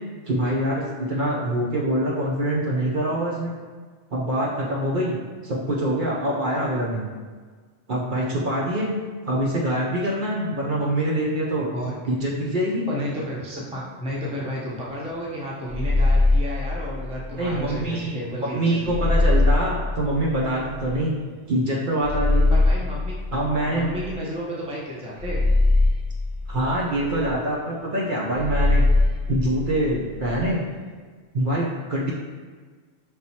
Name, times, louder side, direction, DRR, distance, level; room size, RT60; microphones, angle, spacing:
voice 1, 0.3-3.5 4.1-5.2 5.4-7.1 7.9-8.9 9.2-11.7 12.1-12.9 17.3-21.2 21.5-22.6 23.3-23.9 26.5-28.9 29.3-30.6 31.3-32.1, right 1 dB, 50° right, -4 dB, 0.7 m, -24 dB
voice 2, 12.9-18.9 22.5-23.2 23.7-25.4, equal, 10° right, -4 dB, 0.5 m, -32 dB
sound 1, 15.7-17.8 18.8-21.0 22.0-24.4 25.2-27.3 28.3-30.5, left 2 dB, 85° right, 1.0 m, -22 dB
5.3 x 3.0 x 2.8 m, 1.5 s
omnidirectional pair, 1.2 m